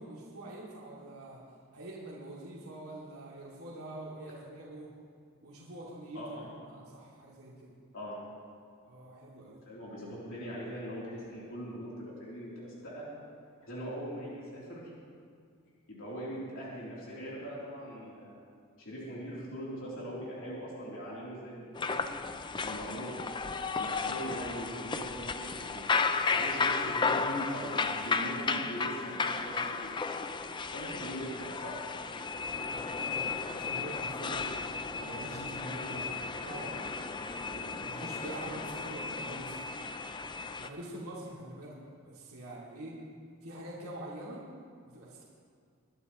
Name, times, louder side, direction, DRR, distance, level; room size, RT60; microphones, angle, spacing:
voice 1, 0.0-1.4 1.7-4.9 5.4-7.7 8.8-9.6 32.5-36.8 37.1-39.7 40.6-41.8 42.0-43.0 43.4-44.4 44.8-45.2, right 1 dB, 80° right, -5 dB, 2.5 m, -45 dB
voice 2, 6.1-6.5 7.9-8.2 9.7-13.1 13.6-14.9 15.9-18.4 18.8-22.1 22.6-23.2 23.8-30.0 30.7-31.8, equal, 65° left, -7 dB, 3.4 m, -41 dB
sound 1, 21.8-40.7, left 4 dB, 20° left, 0.4 m, -34 dB
22.5 x 11.5 x 3.1 m, 2.2 s
head